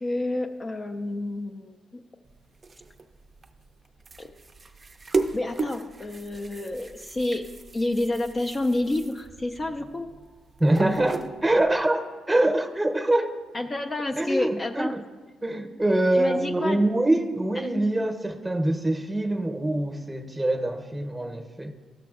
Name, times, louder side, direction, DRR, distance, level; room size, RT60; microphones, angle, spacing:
voice 1, 0.0-2.0 4.2-4.3 5.3-10.1 13.5-15.0 16.1-16.8, left 2 dB, 30° left, 4 dB, 0.4 m, -29 dB
sound 1, 2.3-11.8, right 3 dB, 30° right, 0.5 m, -35 dB
voice 2, 10.6-13.3 14.2-15.0 15.4-21.7, right 1 dB, 10° right, 4 dB, 0.9 m, -24 dB
13.5 x 6.0 x 2.4 m, 1.4 s
cardioid pair, 90°, 0 cm